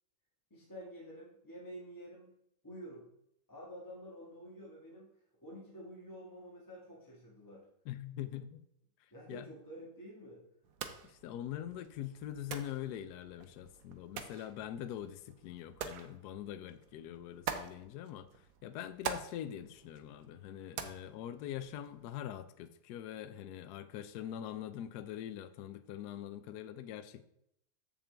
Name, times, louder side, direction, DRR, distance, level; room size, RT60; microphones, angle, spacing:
voice 1, 0.5-2.3 2.6-3.1 3.5-5.1 5.4-7.6 9.1-10.4, equal, 10° left, -4 dB, 1.4 m, -49 dB
voice 2, 7.9-8.7 9.3-9.5 11.0-18.3 18.6-27.2, left 11 dB, 85° left, 11 dB, 0.9 m, -43 dB
sound 1, 10.6-22.1, right 7 dB, 80° right, 0.7 m, -46 dB
7.2 x 7.0 x 3.3 m, 0.76 s
omnidirectional pair, 2.3 m